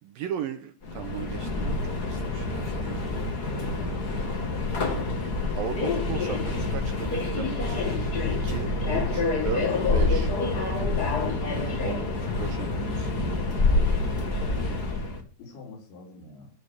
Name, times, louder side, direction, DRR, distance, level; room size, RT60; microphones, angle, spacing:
voice 1, 0.0-3.1 3.5-4.0 5.6-7.9 8.3-9.7 9.9-10.3 11.8-12.0 12.4-13.1, right 9 dB, 75° right, 8 dB, 2.1 m, -37 dB
Subway metro underground, 0.8-15.2, left 3 dB, 50° left, 1.2 m, -27 dB
voice 2, 3.6-4.2 11.7-12.8 15.4-16.5, left 2 dB, 75° left, -6 dB, 6.5 m, -45 dB
16.5 x 5.5 x 8.1 m, 0.43 s
omnidirectional pair, 5.2 m